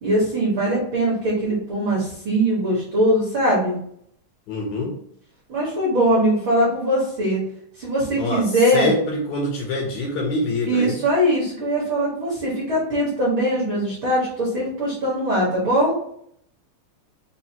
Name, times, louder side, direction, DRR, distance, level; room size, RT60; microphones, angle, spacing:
voice 1, 0.0-3.8 5.5-7.4 7.8-8.9 10.7-16.0, right 1 dB, 50° right, -5 dB, 1.6 m, -21 dB
voice 2, 4.5-5.0 8.2-8.5 8.7-11.0, left 2 dB, 70° left, 0 dB, 1.9 m, -25 dB
5.5 x 2.6 x 2.8 m, 0.67 s
omnidirectional pair, 3.7 m